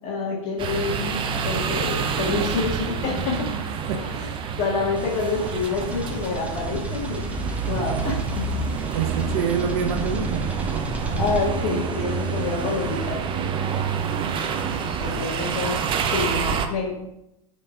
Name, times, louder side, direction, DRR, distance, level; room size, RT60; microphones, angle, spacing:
voice 1, 0.0-3.5 4.0-4.3 4.6-7.4 7.6-8.4 11.2-13.2 13.5-13.8 15.0-15.8 16.1-17.0, left 4 dB, 40° left, -3 dB, 1.9 m, -27 dB
sound 1, 0.6-16.7, right 6 dB, 25° right, 0.7 m, -28 dB
voice 2, 3.7-4.5 8.9-10.5 13.7-14.7 15.0-15.3, right 6 dB, 50° right, 5 dB, 1.2 m, -30 dB
sound 2, 5.0-13.2, right 1 dB, 5° right, 1.1 m, -33 dB
6.6 x 4.4 x 5.3 m, 0.84 s
figure-of-eight pair, 95°, 18 cm